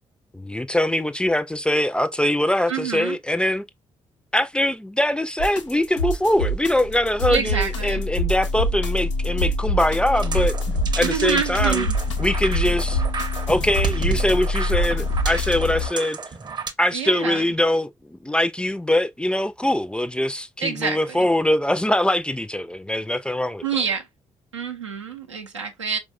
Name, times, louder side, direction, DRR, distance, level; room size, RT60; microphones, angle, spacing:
voice 1, 0.3-3.6 4.3-10.5 11.0-11.9 12.2-13.0 13.5-16.2 16.8-23.6, left 1 dB, 5° left, 0.4 m, -22 dB
voice 2, 2.7-3.2 7.3-8.0 11.0-11.9 16.9-17.4 20.6-21.3 23.6-24.1 24.5-26.0, right 6 dB, 85° right, 0.6 m, -27 dB
sound 1, 5.4-15.9, left 1 dB, 80° left, 0.6 m, -25 dB
sound 2, 10.1-16.7, right 4 dB, 30° right, 0.7 m, -32 dB
4.5 x 2.2 x 2.4 m
figure-of-eight pair, 40°, 15 cm